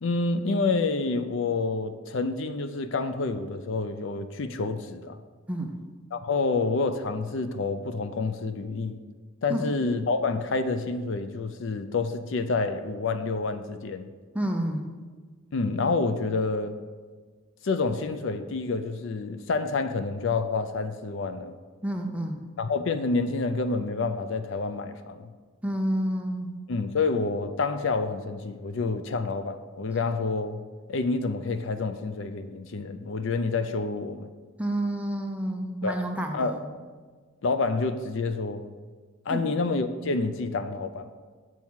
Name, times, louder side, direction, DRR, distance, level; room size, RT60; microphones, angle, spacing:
voice 1, 0.0-5.2 6.1-9.0 9.4-14.1 15.5-16.8 17.6-21.6 22.6-25.3 26.7-30.6 30.9-34.3 35.8-36.0 36.3-36.6 37.4-38.7 39.3-41.1, left 3 dB, 60° left, 9 dB, 0.4 m, -28 dB
voice 2, 5.5-5.8 9.5-9.7 14.3-14.9 21.8-22.5 25.6-26.6 34.6-36.7 39.3-39.4, right 1 dB, 5° right, 2 dB, 0.6 m, -29 dB
7.2 x 4.6 x 6.2 m, 1.5 s
head